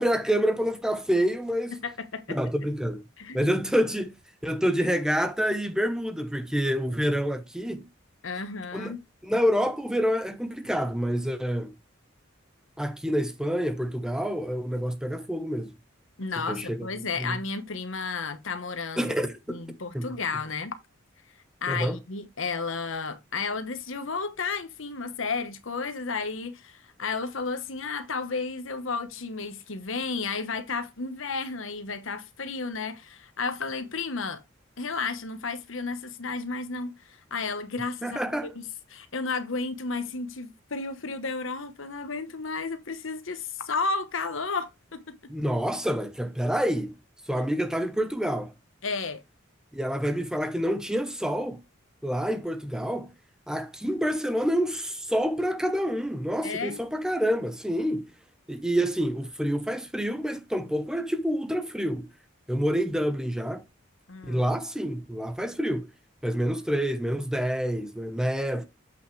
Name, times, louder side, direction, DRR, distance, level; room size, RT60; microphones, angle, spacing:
voice 1, 0.0-1.8 2.3-3.0 3.3-4.2 4.4-7.9 8.7-8.9 9.2-11.7 12.8-15.7 16.5-16.9 17.2-17.4 19.0-19.7 19.9-20.1 21.7-22.0 38.0-38.5 45.3-46.9 47.3-48.5 49.7-51.6 52.0-53.1 53.5-58.1 58.5-62.1 62.5-63.6 64.3-65.9 66.2-68.6, equal, 5° right, 0.8 m, -27 dB
voice 2, 1.7-2.4 3.2-3.6 8.2-9.0 16.2-19.1 19.5-20.8 21.6-34.4 34.8-45.3 48.8-49.2 56.4-56.8 64.1-64.4, left 4 dB, 75° left, 1.1 m, -33 dB
8.2 x 5.8 x 3.2 m
head